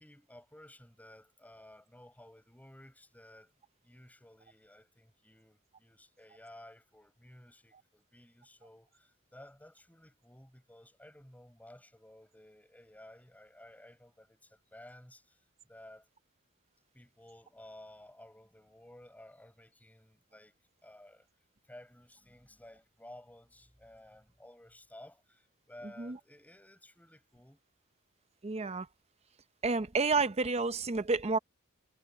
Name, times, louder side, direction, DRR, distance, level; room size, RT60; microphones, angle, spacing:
voice 1, 0.0-3.5 3.8-16.1 16.9-21.3 21.6-27.6, left 1 dB, 10° left, 6.8 m, -55 dB
voice 2, 28.4-28.9 29.6-31.4, right 4 dB, 30° right, 0.7 m, -30 dB
head